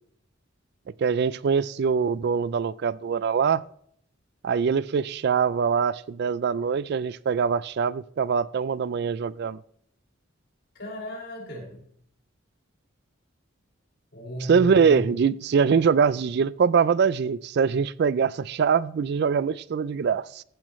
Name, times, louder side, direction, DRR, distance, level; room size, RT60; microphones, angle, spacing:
voice 1, 1.0-3.6 4.4-9.6 14.5-20.4, right 6 dB, 55° right, 0.3 m, -23 dB
voice 2, 10.7-11.8 14.1-15.1, equal, 60° left, 5.6 m, -35 dB
15.0 x 10.5 x 3.1 m
head